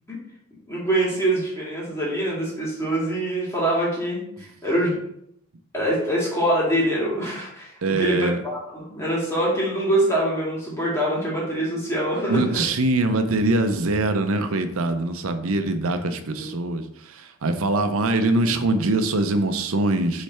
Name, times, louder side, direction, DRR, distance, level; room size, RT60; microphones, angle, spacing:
voice 1, 0.7-5.0 5.7-12.6 16.4-16.5, right 1 dB, 10° left, -6 dB, 1.9 m, -24 dB
voice 2, 7.8-8.4 12.3-20.2, right 2 dB, 75° right, 8 dB, 0.6 m, -23 dB
6.7 x 3.2 x 4.3 m, 0.76 s
head